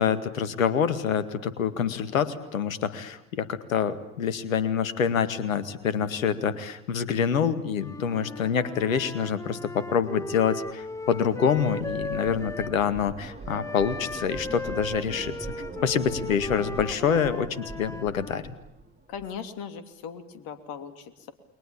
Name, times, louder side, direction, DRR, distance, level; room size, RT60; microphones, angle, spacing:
voice 1, 0.0-15.3 15.8-18.6, left 7 dB, 80° left, 12 dB, 2.0 m, -26 dB
Wind instrument woodwind instrument, 7.7-12.8 13.5-18.4, left 2 dB, 5° left, 1.8 m, -37 dB
sound 1, 10.6-19.4, right 3 dB, 25° right, 6.0 m, -43 dB
voice 2, 19.1-21.3, left 7 dB, 65° left, 9 dB, 3.2 m, -39 dB
29.5 x 23.0 x 8.7 m, 0.77 s
figure-of-eight pair, 55°, 40 cm